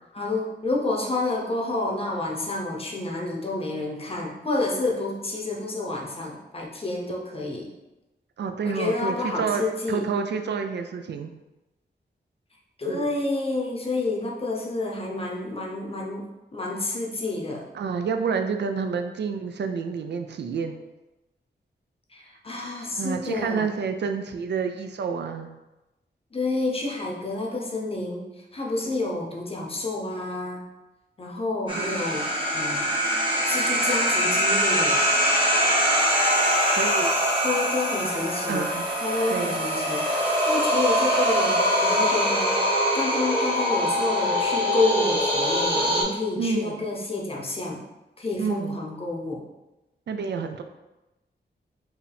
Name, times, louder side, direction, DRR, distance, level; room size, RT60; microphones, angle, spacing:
voice 1, 0.1-7.7 8.6-10.1 12.8-16.3 16.5-17.7 22.1-23.7 26.3-28.3 28.5-30.7 31.2-32.3 32.5-32.9 33.5-35.0 37.4-38.7 39.0-47.8 48.2-49.4, left 2 dB, 35° left, -1 dB, 0.7 m, -29 dB
voice 2, 8.4-11.3 12.9-13.1 17.7-20.8 23.0-25.5 28.8-29.0 31.7-32.1 36.8-37.1 38.5-38.9 39.3-39.6 46.4-46.8 48.4-48.8 50.1-50.6, right 5 dB, 75° right, 6 dB, 0.4 m, -29 dB
sound 1, 31.7-46.0, equal, 25° right, 1.1 m, -23 dB
4.6 x 2.7 x 3.4 m, 1.0 s
wide cardioid pair, 145°, 18 cm